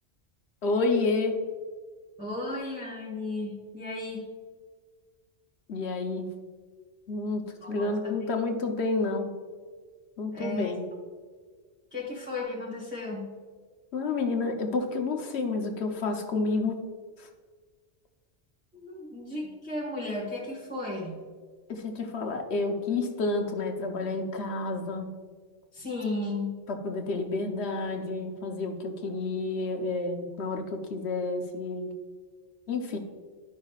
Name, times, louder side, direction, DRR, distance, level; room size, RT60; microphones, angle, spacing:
voice 1, 0.6-1.4 5.7-6.3 7.1-9.3 10.2-10.8 13.9-16.8 17.2-17.3 21.7-25.1 26.7-31.9 32.7-33.0, left 3 dB, 65° left, 4 dB, 1.1 m, -30 dB
voice 2, 2.2-4.3 7.6-8.2 10.3-10.7 11.9-13.3 18.7-21.2 25.7-26.5, left 2 dB, 10° right, -7 dB, 1.5 m, -34 dB
12.5 x 5.6 x 2.4 m, 1.5 s
omnidirectional pair, 1.2 m